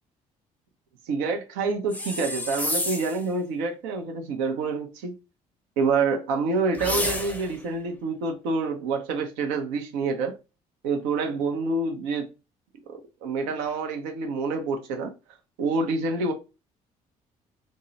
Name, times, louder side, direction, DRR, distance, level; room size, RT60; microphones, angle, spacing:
voice 1, 1.1-5.1 5.8-10.4 10.8-12.3 12.9-15.1 15.6-16.3, right 4 dB, 80° right, 0.7 m, -27 dB
sound 1, 1.9-3.2 6.7-7.6, left 1 dB, 10° left, 0.6 m, -30 dB
3.6 x 2.1 x 2.6 m
hypercardioid pair, 50°, 18 cm